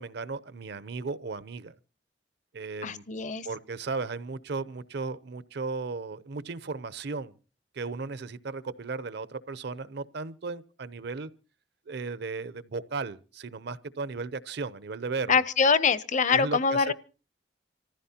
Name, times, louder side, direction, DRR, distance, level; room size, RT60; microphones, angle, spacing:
voice 1, 0.0-1.7 2.5-3.0 3.4-7.3 7.7-11.3 11.9-15.4 16.3-16.9, right 4 dB, 65° right, 0.7 m, -35 dB
voice 2, 2.8-3.5 15.3-16.9, left 5 dB, 45° left, 0.6 m, -24 dB
26.0 x 15.0 x 2.8 m
head